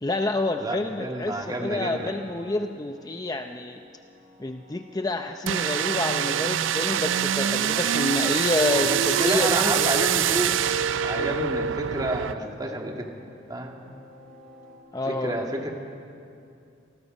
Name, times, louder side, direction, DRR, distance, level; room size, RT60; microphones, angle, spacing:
voice 1, 0.0-1.3 1.6-3.8 4.4-9.9 11.2-11.5 14.9-15.7, left 2 dB, 20° left, 6 dB, 0.6 m, -28 dB
voice 2, 0.6-2.2 8.8-10.6 11.0-13.1 13.5-13.8 15.1-15.7, right 1 dB, 20° right, 1 dB, 2.1 m, -30 dB
sound 1, 1.9-14.8, equal, 5° left, 7.5 m, -49 dB
sound 2, 5.5-12.3, right 9 dB, 75° right, 0.5 m, -25 dB
28.0 x 19.5 x 5.4 m, 2.5 s
head